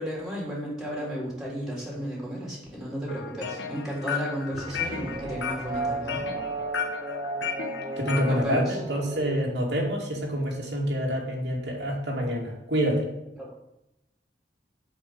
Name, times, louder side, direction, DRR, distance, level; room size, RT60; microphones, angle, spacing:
voice 1, 0.0-6.2 8.3-8.8 13.4-13.5, equal, ahead, -5 dB, 3.6 m, -33 dB
sound 1, 3.1-8.4, left 6 dB, 85° left, 1.5 m, -34 dB
sound 2, 4.5-10.1, right 3 dB, 25° right, 0.7 m, -35 dB
voice 2, 8.0-13.1, equal, 70° right, -2 dB, 2.5 m, -27 dB
8.2 x 5.5 x 7.6 m, 0.89 s
head